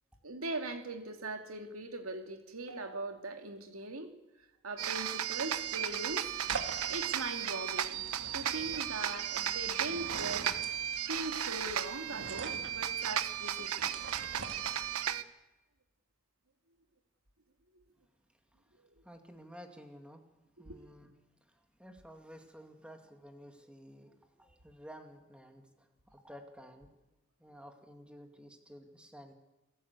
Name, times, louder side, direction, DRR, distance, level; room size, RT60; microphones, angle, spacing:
voice 1, 0.2-4.1 4.6-6.4 6.9-8.1 8.3-10.5 11.1-14.1 20.7-20.8, right 2 dB, 75° right, 6 dB, 2.7 m, -40 dB
sound 1, 4.8-15.2, right 10 dB, 90° right, 1.0 m, -35 dB
sound 2, 5.4-15.2, right 4 dB, 60° right, 2.3 m, -46 dB
voice 2, 19.0-20.2 20.6-21.1 21.5-26.9 27.4-29.3, equal, 5° right, 5 dB, 2.4 m, -53 dB
27.5 x 15.5 x 8.3 m, 1.0 s
head